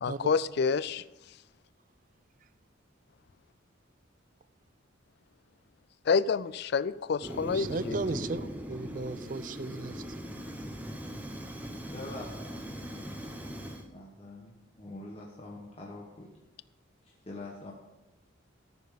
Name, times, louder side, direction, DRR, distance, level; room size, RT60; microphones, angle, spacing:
voice 1, 0.0-1.0 6.1-8.0, left 5 dB, 50° left, 0.3 m, -28 dB
Fire, 7.2-13.8, equal, 10° right, 0.9 m, -40 dB
voice 2, 7.5-10.2, right 3 dB, 40° right, 0.4 m, -36 dB
voice 3, 11.9-13.6 13.9-16.3 17.3-17.7, left 2 dB, 30° left, 1.2 m, -45 dB
14.0 x 6.9 x 4.9 m
head